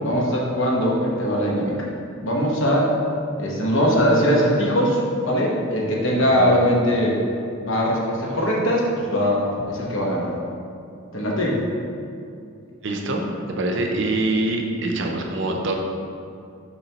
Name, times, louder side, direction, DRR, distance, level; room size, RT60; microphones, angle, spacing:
voice 1, 0.0-1.8 2.2-2.9 3.4-7.2 7.6-10.3 11.1-11.6, equal, 65° left, -3 dB, 1.1 m, -21 dB
voice 2, 6.2-6.6 12.8-15.8, right 2 dB, 60° right, 2 dB, 0.6 m, -25 dB
6.9 x 4.6 x 2.9 m, 2.5 s
head